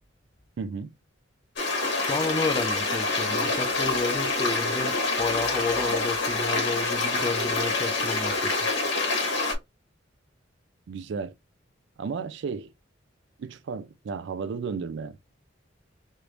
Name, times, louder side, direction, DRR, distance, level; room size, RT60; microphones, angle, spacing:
voice 1, 0.6-0.9 10.9-11.3 12.0-12.7 13.4-15.3, right 5 dB, 65° right, 0.3 m, -33 dB
Stream, 1.6-9.5, left 3 dB, 60° left, 1.5 m, -26 dB
voice 2, 2.1-8.6, left 3 dB, 20° left, 0.4 m, -31 dB
3.3 x 3.0 x 2.5 m
head